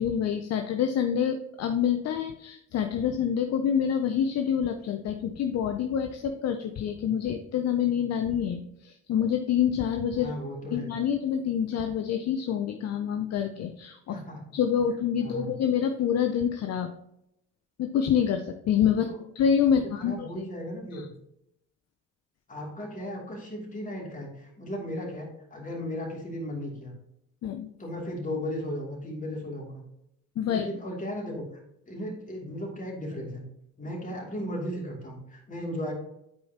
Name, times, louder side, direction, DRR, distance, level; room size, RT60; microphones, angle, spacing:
voice 1, 0.0-10.4 10.7-14.2 14.5-16.9 17.8-19.1 19.4-20.3 20.9-21.0 27.4-27.7 30.4-30.7, left 8 dB, 50° left, 6 dB, 0.7 m, -27 dB
voice 2, 10.2-10.9 14.1-14.4 15.2-15.5 18.9-19.2 19.7-21.1 22.5-26.9 27.8-29.8 30.5-31.4 31.9-33.4 33.8-35.9, equal, 25° left, -1 dB, 2.7 m, -36 dB
8.4 x 4.8 x 2.9 m, 0.77 s
supercardioid pair, 65°, 33 cm